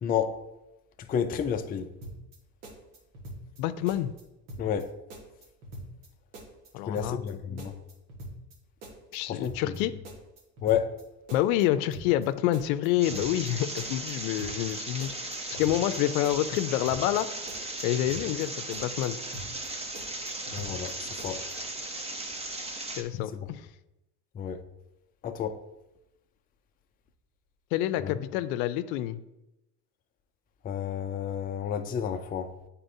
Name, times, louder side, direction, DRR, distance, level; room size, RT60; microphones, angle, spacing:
voice 1, 0.0-0.4 1.1-1.9 4.6-4.9 6.9-7.8 9.3-9.7 10.6-10.9 20.5-21.4 23.3-23.5 24.3-24.6 25.2-25.6 28.0-28.2 30.6-32.5, left 8 dB, 20° left, 0.4 m, -30 dB
sound 1, 2.0-2.4 2.6-3.6 3.9-4.2 4.5-4.8 5.1-6.1 6.3-6.7 7.0-7.3 7.6-8.6 8.8-9.2 9.4-9.8 10.1-11.0 11.3-11.6 11.9-12.3 12.5-13.5 13.8-14.1 14.4-14.7 15.0-16.0 16.2-16.6 16.9-17.2 17.5-18.5 18.7-19.1 19.3-19.7 19.9-20.9 21.2-21.5, right 1 dB, 85° right, 1.7 m, -43 dB
voice 2, 3.6-4.1 6.7-7.2 9.1-9.9 11.3-17.3 17.8-19.2 23.0-23.7 27.7-29.2, left 13 dB, 80° left, 0.5 m, -28 dB
sound 2, 13.0-23.0, right 2 dB, 15° right, 0.7 m, -37 dB
8.8 x 4.2 x 2.7 m
supercardioid pair, 100°, 43 cm